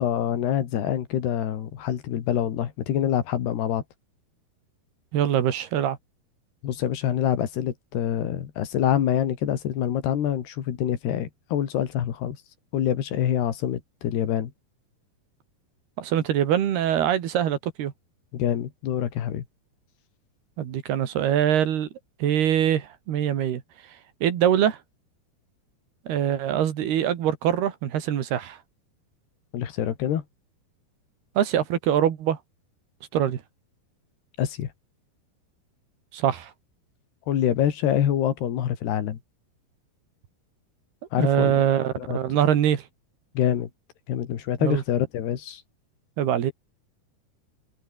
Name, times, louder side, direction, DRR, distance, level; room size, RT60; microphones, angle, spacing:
voice 1, 0.0-3.8 6.6-12.4 12.7-14.5 18.3-19.4 29.5-30.2 34.4-34.7 37.3-39.2 41.1-42.2 43.4-43.7 44.1-45.6, left 10 dB, 75° left, 4.3 m, -26 dB
voice 2, 5.1-6.0 16.0-17.9 20.6-21.9 22.2-23.6 24.2-24.8 26.1-28.6 31.4-32.4 33.1-33.4 36.1-36.5 41.2-42.8 44.6-44.8 46.2-46.5, right 10 dB, 70° right, 4.0 m, -23 dB
omnidirectional pair, 4.8 m